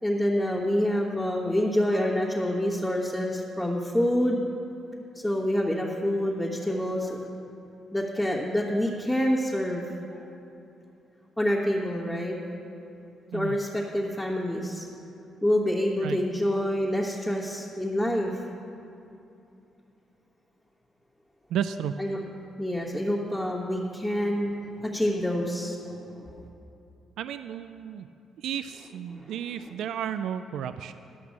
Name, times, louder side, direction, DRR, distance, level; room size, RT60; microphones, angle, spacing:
voice 1, 0.0-4.4 5.1-7.2 7.9-9.8 10.1-10.2 11.4-12.4 13.3-14.9 15.4-18.5 22.0-22.2 22.6-24.5 24.8-26.5 29.1-29.3, equal, 5° left, -8 dB, 1.4 m, -27 dB
voice 2, 21.5-21.9 27.2-28.1 28.4-30.9, right 9 dB, 80° right, 11 dB, 0.3 m, -32 dB
12.0 x 5.9 x 7.4 m, 2.8 s
cardioid pair, 90°, 0 cm